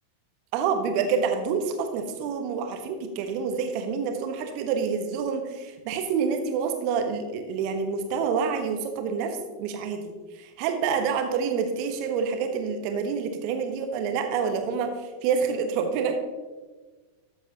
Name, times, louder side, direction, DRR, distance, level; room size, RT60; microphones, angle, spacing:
voice 1, 0.5-16.2, right 6 dB, 45° right, 6 dB, 1.2 m, -27 dB
13.0 x 8.0 x 2.9 m, 1.3 s
figure-of-eight pair, 90°, 0 cm